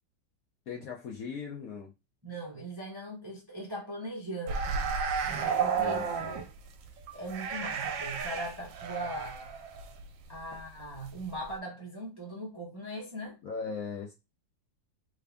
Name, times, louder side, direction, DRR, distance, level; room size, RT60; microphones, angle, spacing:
voice 1, 0.7-1.9 5.8-6.4 13.4-14.1, left 5 dB, 65° left, 0.9 m, -39 dB
voice 2, 2.2-5.0 5.6-6.5 7.1-9.4 10.3-13.4, equal, 25° right, 0.5 m, -40 dB
sound 1, 4.5-11.1 11.3-11.5, right 6 dB, 80° right, 1.3 m, -32 dB
3.4 x 2.5 x 3.3 m
omnidirectional pair, 2.0 m